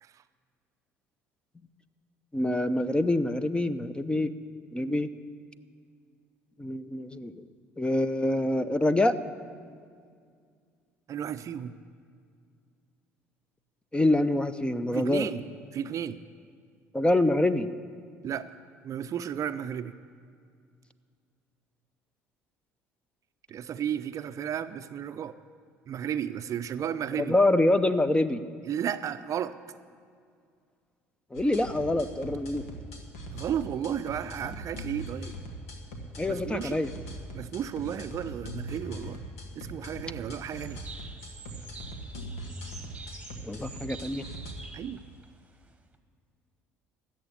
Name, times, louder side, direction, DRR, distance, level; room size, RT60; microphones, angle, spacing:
voice 1, 2.3-4.3 4.7-5.1 6.6-7.3 7.8-9.2 13.9-15.3 16.9-17.7 27.2-28.4 31.3-32.6 36.2-36.9 43.4-44.2, left 1 dB, 15° left, 13 dB, 0.7 m, -25 dB
voice 2, 11.1-11.7 14.9-15.5 15.7-16.2 18.2-18.5 18.8-20.0 23.5-25.4 25.9-27.3 28.6-29.6 33.3-35.3 36.3-36.8 37.3-39.2 39.5-40.8 44.7-45.0, right 9 dB, 45° right, 12 dB, 0.5 m, -33 dB
sound 1, 31.3-44.5, equal, 80° left, 1.7 m, -41 dB
sound 2, 40.2-46.0, right 4 dB, 15° right, 1.3 m, -47 dB
14.0 x 7.9 x 9.7 m, 2.2 s
hypercardioid pair, 60°, 8 cm